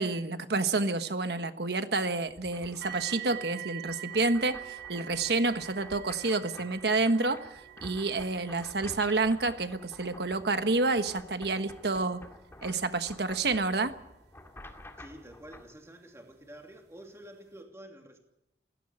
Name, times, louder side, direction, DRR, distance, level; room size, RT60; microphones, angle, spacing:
voice 1, 0.0-7.4 7.8-12.2 12.6-13.9, right 3 dB, 65° right, 9 dB, 1.3 m, -29 dB
sound 1, 2.3-15.6, left 1 dB, 15° left, 2.2 m, -51 dB
sound 2, 2.8-15.7 16.5-16.6 17.2-17.3, right 14 dB, 85° right, 6.6 m, -47 dB
voice 2, 15.0-18.2, right 1 dB, 15° right, 2 dB, 2.8 m, -49 dB
16.5 x 16.0 x 9.9 m, 0.88 s
head